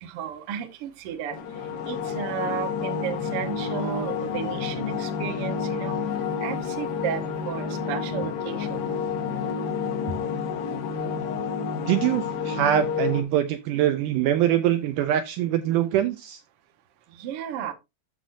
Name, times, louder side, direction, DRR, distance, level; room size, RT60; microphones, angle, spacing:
voice 1, 0.0-1.4 1.9-5.9 6.4-8.8 10.1-10.2 17.1-17.7, right 8 dB, 60° right, 1.5 m, -33 dB
sound 1, 1.3-13.2, left 6 dB, 80° left, 3.2 m, -29 dB
voice 2, 11.9-16.4, right 11 dB, 80° right, 1.9 m, -23 dB
13.5 x 5.0 x 2.6 m
omnidirectional pair, 4.1 m